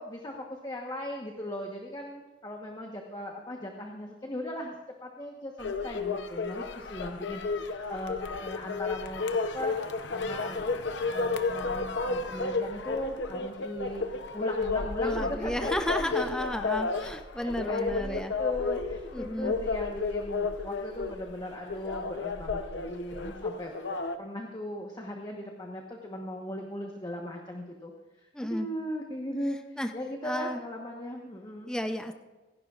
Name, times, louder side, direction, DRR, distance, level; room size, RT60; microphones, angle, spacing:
voice 1, 0.0-4.8 5.0-9.7 10.1-10.6 11.1-16.7 17.4-27.9 28.2-31.7, left 1 dB, 25° left, 1 dB, 1.2 m, -38 dB
sound 1, 5.6-24.2, left 3 dB, 70° left, 0.8 m, -32 dB
voice 2, 15.0-18.3 19.1-19.5 28.3-28.7 29.8-29.9 30.2-30.6 31.7-32.1, left 1 dB, 5° left, 6 dB, 0.6 m, -33 dB
25.5 x 11.5 x 2.5 m, 1.2 s
head